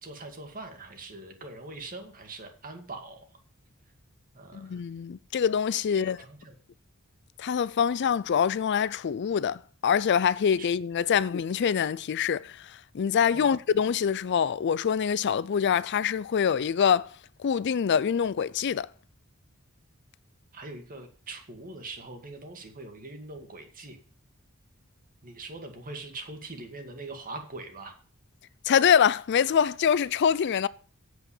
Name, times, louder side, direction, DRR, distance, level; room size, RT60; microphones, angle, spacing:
voice 1, 0.0-3.3 4.3-4.8 5.9-6.5 10.6-10.7 13.3-13.6 20.5-24.0 25.2-27.9, right 2 dB, 40° right, 2.2 m, -42 dB
voice 2, 4.5-6.2 7.4-17.1 17.4-18.9 28.6-30.7, left 7 dB, 55° left, 0.4 m, -25 dB
8.2 x 8.2 x 7.2 m
head